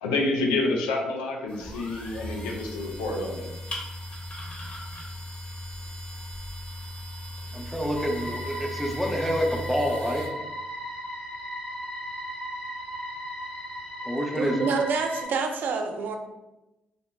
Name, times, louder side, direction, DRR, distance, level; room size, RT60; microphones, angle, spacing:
voice 1, 0.0-3.5, left 2 dB, 80° left, 0 dB, 0.4 m, -28 dB
sound 1, 1.5-10.3, left 1 dB, 30° left, 1.0 m, -38 dB
voice 2, 7.5-10.3 14.0-14.7, equal, ahead, 1 dB, 0.6 m, -27 dB
sound 2, 7.9-15.2, equal, 55° left, 1.1 m, -36 dB
voice 3, 14.4-16.2, right 4 dB, 60° right, 5 dB, 0.3 m, -27 dB
2.3 x 2.0 x 3.7 m, 0.98 s
hypercardioid pair, 40°, 4 cm